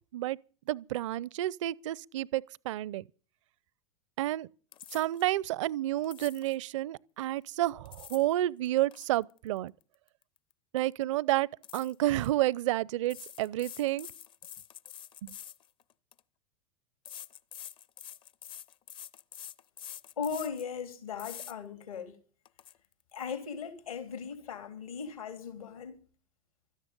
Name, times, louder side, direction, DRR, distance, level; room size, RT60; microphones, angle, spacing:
voice 1, 0.7-3.0 4.2-4.5 4.9-9.7 10.7-11.5 11.7-14.1 15.2-15.4, right 15 dB, 60° right, 0.6 m, -30 dB
sound 1, 4.7-5.3 6.0-6.6 7.6-8.3 8.7-10.5 10.8-11.0 11.6-12.3 13.1-16.2 17.1-20.7 21.2-21.5 22.0-22.1 22.5-22.7, left 10 dB, 30° left, 0.6 m, -47 dB
voice 2, 20.2-22.2 23.1-26.1, left 6 dB, 80° left, 3.5 m, -38 dB
17.0 x 13.5 x 5.3 m
figure-of-eight pair, 90°, 18 cm